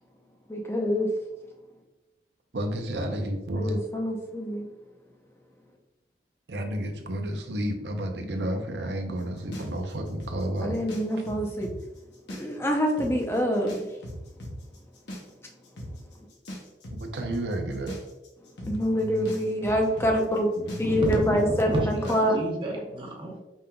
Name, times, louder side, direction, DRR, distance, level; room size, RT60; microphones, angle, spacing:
voice 1, 0.5-1.1 3.6-4.6 10.6-11.7 12.4-13.7 18.7-20.5 20.8-22.4, equal, 15° left, 1 dB, 0.6 m, -25 dB
voice 2, 2.5-3.8 6.5-10.8 17.0-18.0, right 1 dB, 75° right, 4 dB, 0.7 m, -31 dB
sound 1, 9.5-11.8 12.1-12.7 13.0-13.1 13.7-22.3, left 1 dB, 80° left, 0.9 m, -38 dB
voice 3, 20.8-23.4, right 1 dB, 30° right, -2 dB, 1.0 m, -31 dB
5.2 x 3.7 x 2.2 m, 1.0 s
head